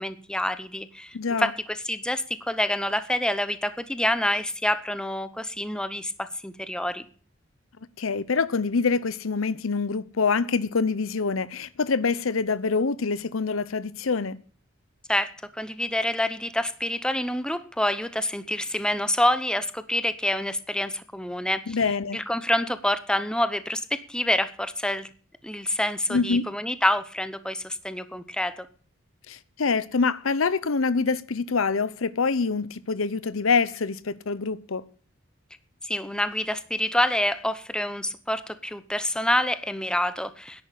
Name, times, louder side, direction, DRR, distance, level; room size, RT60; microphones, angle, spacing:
voice 1, 0.0-7.0 15.1-21.8 22.1-25.1 25.4-28.7 35.8-40.6, left 1 dB, 5° left, 0.8 m, -27 dB
voice 2, 1.1-1.5 8.0-14.4 21.7-22.2 26.1-26.5 29.3-34.8, left 4 dB, 85° left, 0.8 m, -25 dB
11.0 x 9.2 x 8.4 m
head